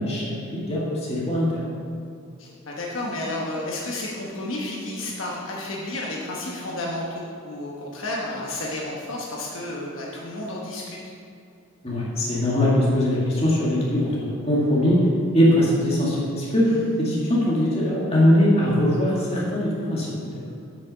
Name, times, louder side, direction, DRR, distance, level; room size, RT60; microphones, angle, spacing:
voice 1, 0.0-1.7 11.8-14.1 14.4-15.0 15.3-16.7 17.0-20.1, left 1 dB, 30° left, -6 dB, 2.1 m, -21 dB
voice 2, 2.4-11.0 16.7-16.9, left 1 dB, 65° left, -3 dB, 1.1 m, -31 dB
8.4 x 6.4 x 5.6 m, 2.4 s
head